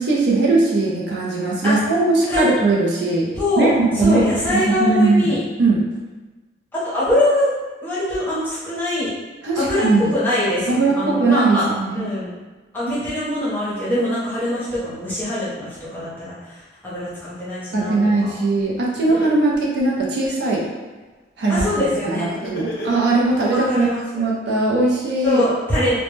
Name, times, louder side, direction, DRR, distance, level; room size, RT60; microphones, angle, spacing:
voice 1, 0.0-3.3 3.6-4.2 4.7-5.9 9.4-10.1 10.7-12.0 17.7-20.6 21.4-25.4, right 2 dB, 65° right, -3 dB, 0.5 m, -19 dB
voice 2, 3.3-5.4 6.7-7.5 7.8-9.1 9.5-11.6 11.9-12.3 12.7-18.4 21.5-22.3 23.5-24.2 25.2-26.0, left 1 dB, 10° left, -10 dB, 0.7 m, -23 dB
Laughter, 18.6-18.7 19.1-20.6 22.3-23.5, left 1 dB, 60° left, 0.5 m, -31 dB
2.1 x 2.1 x 3.0 m, 1.3 s
head